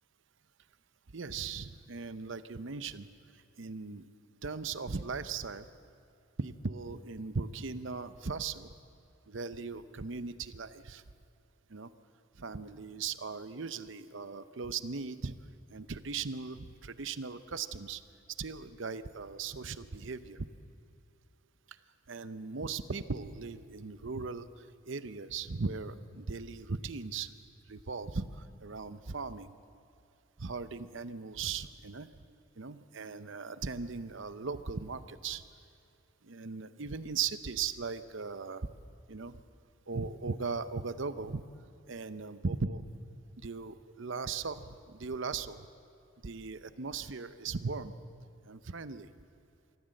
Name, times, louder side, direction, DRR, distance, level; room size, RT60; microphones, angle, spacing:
voice 1, 1.1-3.1 3.6-4.1 4.4-5.7 6.4-8.7 9.3-11.0 11.7-11.9 12.4-15.3 15.7-18.0 18.4-20.5 22.1-27.3 27.7-29.5 30.4-32.1 32.6-35.4 36.2-38.7 39.1-39.3 39.9-41.4 41.9-42.8 43.4-45.7 46.2-47.9 48.5-49.1, right 4 dB, 65° right, 13 dB, 0.7 m, -38 dB
24.5 x 14.5 x 7.7 m, 2.6 s
head